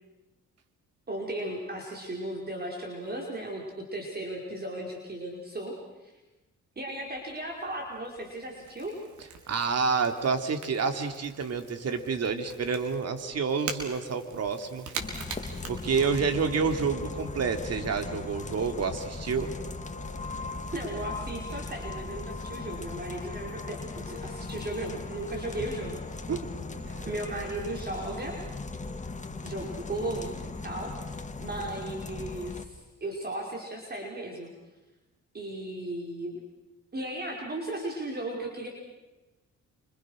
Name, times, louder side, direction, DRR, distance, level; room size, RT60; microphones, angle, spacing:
voice 1, 1.1-5.8 6.0-6.2 6.8-9.0 20.7-26.0 26.7-28.4 29.4-34.5 35.3-36.4 36.9-38.7, right 1 dB, 30° right, 0 dB, 5.3 m, -36 dB
Crackle / Crack, 7.0-16.6, right 5 dB, 70° right, 4.8 m, -43 dB
voice 2, 9.5-14.9 15.7-19.5 26.3-26.4 26.9-27.1, right 5 dB, 55° right, 6 dB, 3.3 m, -28 dB
sound 1, 15.0-32.7, left 3 dB, 25° left, 2.1 m, -38 dB
28.5 x 26.5 x 6.6 m, 1.1 s
cardioid pair, 90°, 30 cm